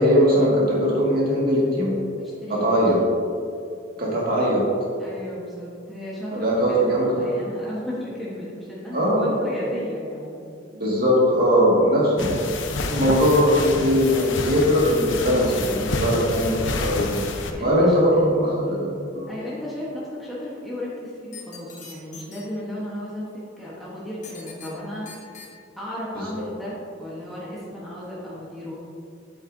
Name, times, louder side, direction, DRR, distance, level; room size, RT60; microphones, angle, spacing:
voice 1, 0.0-2.0 2.5-3.0 4.0-4.7 6.3-7.3 8.9-9.4 10.8-12.5 12.9-17.3 17.6-18.9 19.1-19.3 26.1-26.2, equal, 50° right, -4 dB, 2.0 m, -20 dB
voice 2, 2.1-2.8 5.0-10.5 17.0-18.2 18.6-18.9 19.3-23.3 23.6-25.4 25.8-28.8, left 1 dB, ahead, -8 dB, 1.1 m, -34 dB
sound 1, 12.2-17.5, left 2 dB, 75° left, 0.7 m, -28 dB
sound 2, 21.3-22.4 24.2-24.7 25.1-25.5, left 6 dB, 40° left, 1.0 m, -41 dB
8.6 x 8.2 x 2.7 m, 2.4 s
head